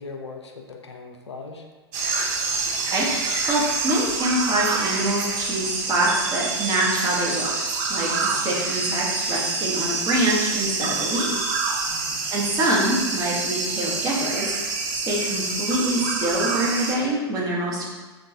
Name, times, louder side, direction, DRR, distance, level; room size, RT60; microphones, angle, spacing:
voice 1, 0.0-1.7 8.3-8.6 11.9-12.2, left 4 dB, 80° left, 2 dB, 0.4 m, -40 dB
sound 1, 1.9-17.0, right 4 dB, 40° right, 0.5 m, -26 dB
voice 2, 2.9-7.5 7.9-11.9 12.3-14.5 15.0-17.8, right 1 dB, 25° right, -4 dB, 0.9 m, -25 dB
3.0 x 2.3 x 3.7 m, 1.3 s
figure-of-eight pair, 100°, 14 cm